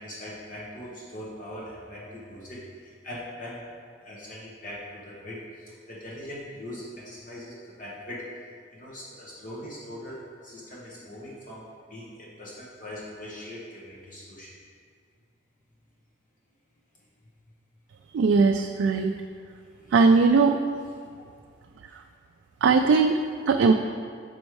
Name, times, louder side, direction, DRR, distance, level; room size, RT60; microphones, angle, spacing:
voice 1, 0.0-3.6 4.0-8.3 8.7-14.5 19.6-19.9 21.9-22.0, left 1 dB, 45° left, -6 dB, 1.1 m, -41 dB
voice 2, 18.1-19.1 19.9-20.6 22.6-23.7, right 4 dB, 75° right, 4 dB, 0.3 m, -19 dB
6.2 x 5.2 x 4.7 m, 2.2 s
head